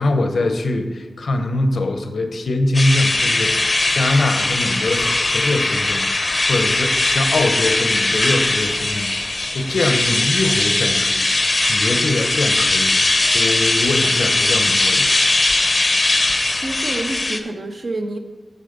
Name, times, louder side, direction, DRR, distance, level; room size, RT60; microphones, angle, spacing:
voice 1, 0.0-15.1, left 2 dB, 85° left, 7 dB, 0.8 m, -23 dB
sound 1, 2.7-17.4, left 2 dB, 35° left, 0.6 m, -19 dB
voice 2, 16.6-18.2, right 2 dB, 50° right, 4 dB, 0.9 m, -27 dB
8.9 x 4.2 x 6.6 m, 1.4 s
wide cardioid pair, 115°, 0 cm